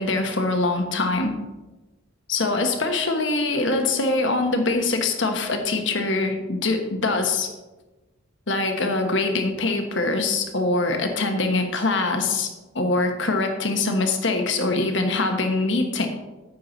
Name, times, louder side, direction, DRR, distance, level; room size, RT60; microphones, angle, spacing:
voice 1, 0.0-1.3 2.3-7.5 8.5-12.5 12.7-16.1, left 3 dB, 65° left, 5 dB, 1.2 m, -23 dB
9.4 x 7.4 x 4.0 m, 1.1 s
head